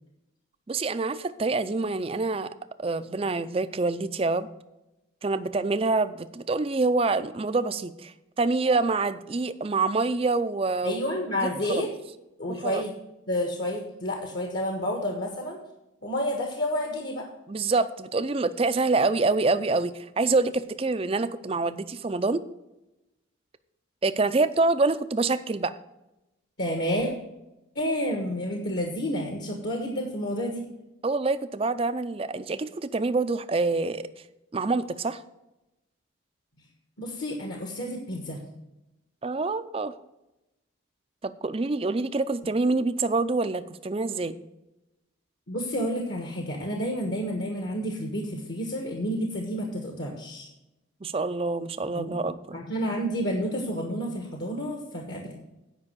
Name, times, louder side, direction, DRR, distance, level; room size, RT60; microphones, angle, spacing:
voice 1, 0.7-2.5 2.8-4.5 5.2-11.0 11.7-11.8 12.5-12.8 17.5-22.4 24.0-25.7 31.0-34.0 34.5-35.2 39.2-39.9 41.2-44.4 51.0-52.6, right 3 dB, 30° right, 12 dB, 0.4 m, -26 dB
voice 2, 10.8-11.9 12.4-12.9 13.3-15.6 16.0-17.3 26.6-27.1 27.7-30.7 37.0-38.4 45.5-50.5 51.9-52.1 52.5-55.3, equal, 55° left, 2 dB, 1.4 m, -30 dB
9.7 x 5.4 x 6.8 m, 0.95 s
head